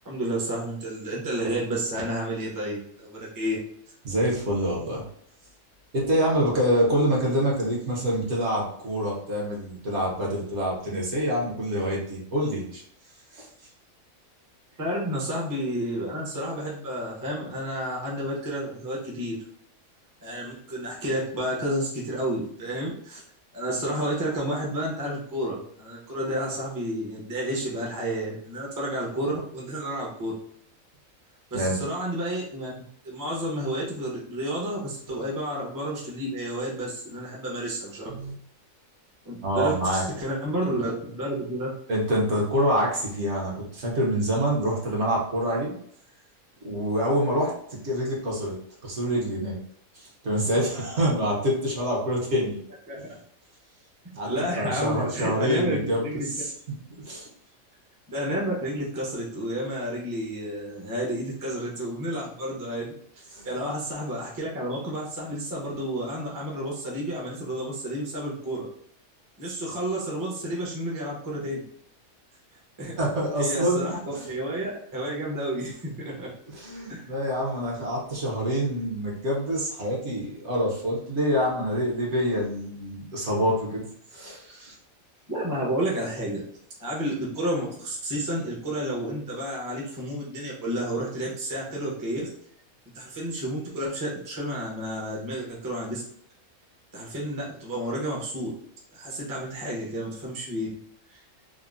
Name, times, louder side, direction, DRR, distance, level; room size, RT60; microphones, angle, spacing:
voice 1, 0.0-3.6 14.8-19.4 20.2-23.2 23.5-30.3 31.5-38.0 39.2-41.7 52.9-53.2 54.3-56.2 58.1-62.9 63.4-68.7 69.4-71.6 72.8-73.0 73.4-76.3 76.9-77.0 85.3-86.4 86.8-92.3 92.9-96.0 96.9-98.5 98.9-100.7 101.1-101.2, right 1 dB, 20° right, -4 dB, 0.5 m, -31 dB
voice 2, 4.0-5.1 5.9-12.8 13.3-13.5 31.5-31.8 38.1-38.3 39.4-40.0 41.9-45.7 46.6-47.5 47.8-48.5 48.8-49.6 49.9-52.6 54.1-56.5 57.1-57.3 63.3-63.5 73.0-73.8 74.1-74.3 76.5-83.9 84.1-84.8, equal, 60° right, -4 dB, 1.1 m, -26 dB
3.6 x 2.0 x 2.4 m, 0.66 s
omnidirectional pair, 1.4 m